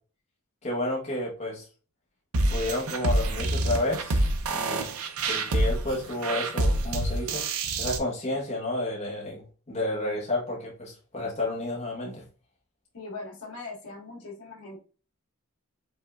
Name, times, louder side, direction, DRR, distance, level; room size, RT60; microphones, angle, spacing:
voice 1, 0.6-1.7 2.5-4.9 5.3-7.4 7.8-12.2, left 1 dB, 30° left, -4 dB, 1.2 m, -31 dB
sound 1, 2.3-8.0, right 2 dB, 75° right, 0.7 m, -27 dB
voice 2, 12.9-14.8, left 3 dB, 75° left, -2 dB, 2.1 m, -40 dB
5.4 x 3.6 x 2.3 m, 0.36 s
head